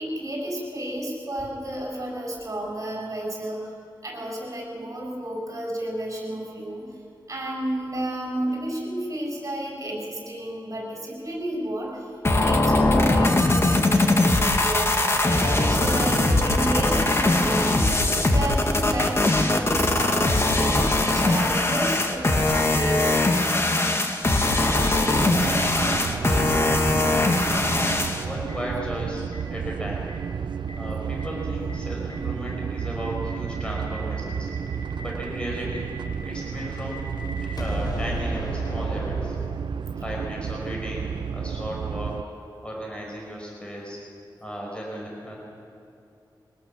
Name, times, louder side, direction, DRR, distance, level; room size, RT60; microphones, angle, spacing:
voice 1, 0.0-3.7 4.0-6.9 7.3-12.1 12.4-23.2 28.2-28.3, right 1 dB, 40° right, -1 dB, 7.2 m, -32 dB
sound 1, 12.2-28.2, left 2 dB, 30° left, 1.8 m, -21 dB
voice 2, 24.6-27.6 28.2-30.1 30.7-34.5 35.0-35.9 36.2-37.1 37.5-39.4 40.0-42.2 42.6-44.0 44.4-45.4, equal, 15° left, -2 dB, 5.0 m, -35 dB
sound 2, 25.1-42.2, right 7 dB, 80° right, 0.5 m, -31 dB
Boom, 28.5-28.6 29.3-29.4 30.1-30.2 30.7-30.8 31.2-31.3 31.7-31.8 32.1-32.2 32.4-40.0, left 1 dB, 60° left, 3.4 m, -37 dB
23.5 x 19.0 x 7.4 m, 2.7 s
wide cardioid pair, 120°, 8 cm